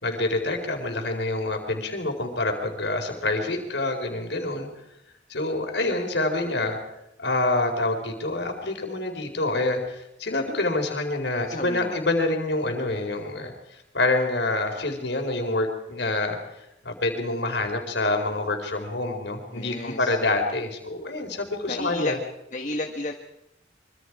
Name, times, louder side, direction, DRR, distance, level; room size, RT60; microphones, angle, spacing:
voice 1, 0.0-4.7 5.3-6.8 7.2-22.2, left 2 dB, 70° left, 4 dB, 4.6 m, -27 dB
voice 2, 11.4-11.9 19.5-20.2 21.7-22.2 22.5-23.1, left 2 dB, 40° left, 4 dB, 1.4 m, -32 dB
25.5 x 25.0 x 4.9 m, 0.86 s
head